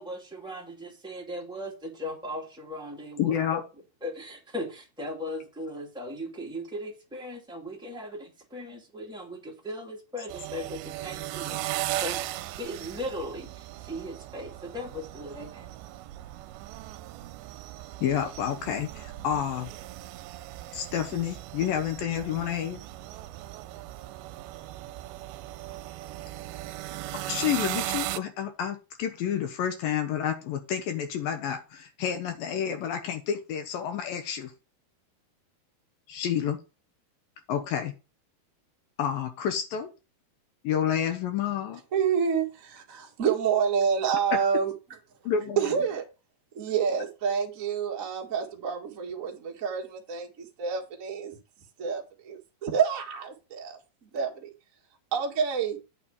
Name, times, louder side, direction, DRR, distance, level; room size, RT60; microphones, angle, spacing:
voice 1, 0.0-3.6 4.0-12.2 12.6-15.7, left 1 dB, ahead, 1.1 m, -38 dB
voice 2, 3.2-3.6 18.0-19.7 20.7-22.8 27.3-34.5 36.1-36.6 37.5-37.9 39.0-39.9 40.6-41.8 45.2-45.6, left 9 dB, 70° left, 2.6 m, -29 dB
sound 1, 10.3-28.2, right 15 dB, 80° right, 2.4 m, -37 dB
voice 3, 41.9-44.7 45.6-46.0 46.5-51.4 51.8-54.5 55.1-55.8, right 7 dB, 45° right, 1.0 m, -28 dB
8.9 x 4.2 x 7.1 m
omnidirectional pair, 4.4 m